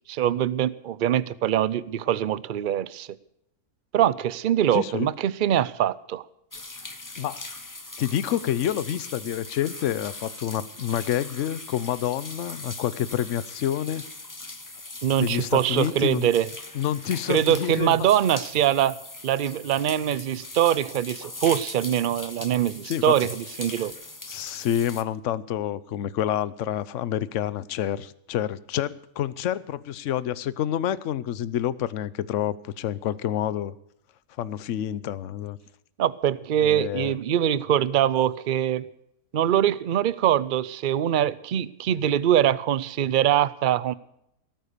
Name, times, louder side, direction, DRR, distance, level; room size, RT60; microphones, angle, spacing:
voice 1, 0.0-3.1 3.9-6.3 15.0-16.5 17.3-19.0 19.2-23.9 36.0-38.9 39.3-43.9, right 10 dB, 55° right, 0.5 m, -23 dB
voice 2, 4.7-5.1 7.2-7.5 8.0-14.0 15.2-16.3 16.7-18.1 22.8-23.1 24.3-33.7 34.4-35.6 36.6-37.1, left 10 dB, 60° left, 1.0 m, -28 dB
sound 1, 6.5-25.0, left 2 dB, 15° left, 0.9 m, -40 dB
18.0 x 9.4 x 6.7 m
omnidirectional pair, 1.5 m